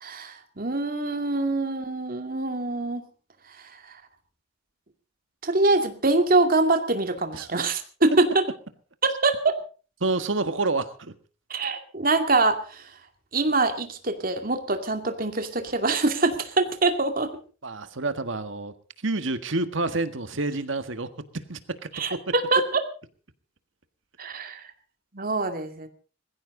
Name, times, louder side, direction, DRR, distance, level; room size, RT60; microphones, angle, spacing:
voice 1, 0.0-3.1 3.5-4.0 5.4-8.4 9.0-9.6 11.5-13.0 13.3-17.3 21.9-22.8 24.2-24.7 25.1-25.9, right 3 dB, 50° right, 6 dB, 2.4 m, -24 dB
voice 2, 10.0-11.1 17.6-18.7 19.0-21.1 21.5-22.2, right 2 dB, 85° right, 10 dB, 1.6 m, -28 dB
20.5 x 15.5 x 3.9 m, 0.37 s
head